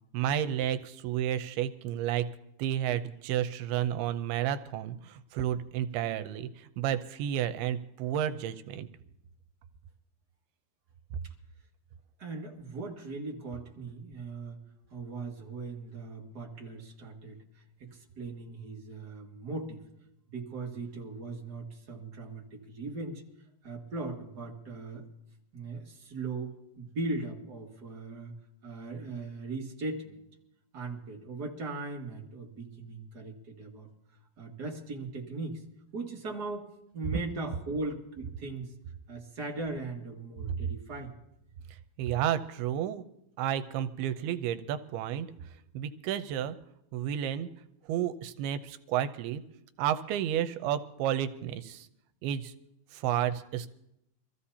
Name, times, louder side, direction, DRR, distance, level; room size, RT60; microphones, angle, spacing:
voice 1, 0.1-2.3 2.6-8.9 42.0-43.0 43.4-45.3 45.7-46.6 46.9-47.5 47.9-49.4 49.8-51.9 52.2-52.5 52.9-53.7, right 10 dB, 85° right, 10 dB, 2.6 m, -31 dB
voice 2, 12.2-14.6 14.9-19.8 20.3-23.2 23.6-25.0 25.5-28.3 28.6-30.2 30.7-33.9 34.4-35.6 35.9-38.7 39.1-41.1, right 3 dB, 35° right, -1 dB, 1.7 m, -39 dB
25.5 x 14.5 x 2.8 m, 0.81 s
omnidirectional pair, 4.5 m